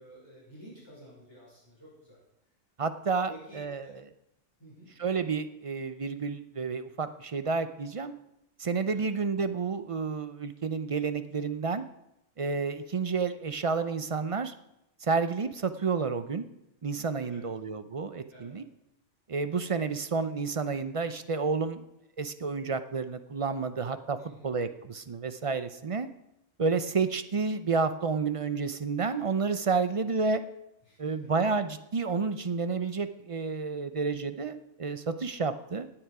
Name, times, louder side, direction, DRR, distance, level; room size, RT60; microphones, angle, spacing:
voice 1, 0.0-2.2 3.2-3.9 4.6-4.9 8.9-9.1 17.2-17.5 18.3-18.6 24.2-24.5 30.9-31.3, right 1 dB, 20° left, -5 dB, 5.5 m, -51 dB
voice 2, 2.8-3.9 5.0-8.1 8.6-11.8 12.4-14.5 15.0-16.5 16.8-18.6 19.3-21.8 22.2-24.2 24.4-26.1 26.6-30.4 31.0-35.9, right 4 dB, 40° right, 11 dB, 0.5 m, -30 dB
17.0 x 8.9 x 4.8 m, 0.85 s
omnidirectional pair, 1.3 m